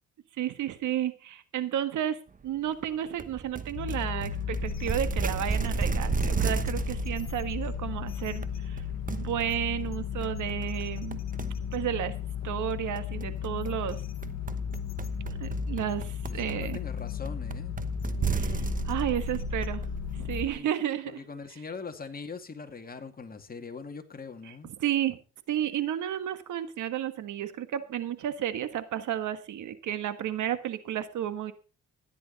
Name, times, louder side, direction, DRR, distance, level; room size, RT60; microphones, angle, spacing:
voice 1, 0.3-11.2 11.7-12.2 12.4-14.0 15.3-16.8 18.3-18.5 18.9-19.8 20.1-21.2 24.5-25.2 25.5-31.5, right 11 dB, 75° right, 11 dB, 1.6 m, -32 dB
sound 1, 3.2-20.6, right 5 dB, 25° right, 1.1 m, -35 dB
sound 2, 3.7-20.5, left 11 dB, 60° left, 1.3 m, -35 dB
voice 2, 16.3-17.7 18.3-18.7 20.4-20.7 21.1-24.7, left 5 dB, 30° left, 6 dB, 2.3 m, -42 dB
15.0 x 11.0 x 4.2 m, 0.34 s
cardioid pair, 90°, 30 cm